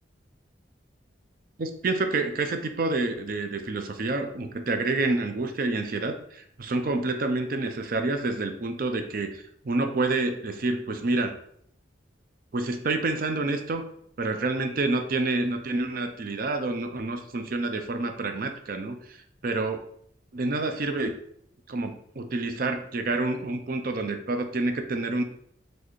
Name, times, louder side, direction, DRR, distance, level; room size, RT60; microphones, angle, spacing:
voice 1, 1.6-11.3 12.5-13.9 14.2-19.2 19.4-19.8 20.3-21.1 21.7-25.2, right 2 dB, 50° right, 6 dB, 0.5 m, -28 dB
4.3 x 3.3 x 3.1 m, 0.66 s
head